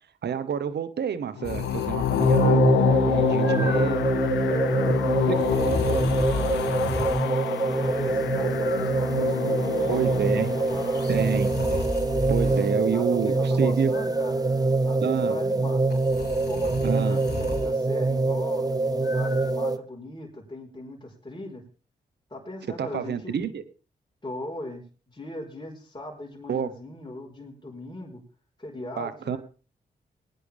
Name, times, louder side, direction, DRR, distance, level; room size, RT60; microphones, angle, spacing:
voice 1, 0.2-4.0 5.3-5.4 9.9-10.5 11.1-11.5 12.3-13.9 15.0-15.4 16.8-17.2 22.8-23.6 26.5-26.7 29.0-29.4, right 8 dB, 70° right, 13 dB, 1.1 m, -28 dB
sound 1, 1.4-11.5, left 12 dB, 85° left, 0.5 m, -27 dB
sound 2, 1.4-2.7 3.3-4.3 5.3-7.3 8.6-9.5 10.7-12.7 13.9-14.7 15.9-17.7 19.0-19.5, left 2 dB, 65° left, 4.2 m, -35 dB
sound 3, 2.2-19.8, right 3 dB, 20° right, 1.0 m, -24 dB
voice 2, 4.5-11.3 12.9-14.4 14.8-15.8 16.5-21.6 22.3-23.5 24.2-28.2 28.6-29.4, left 1 dB, 25° left, -1 dB, 4.8 m, -39 dB
20.0 x 9.7 x 3.5 m, 0.35 s
supercardioid pair, 45°, 18 cm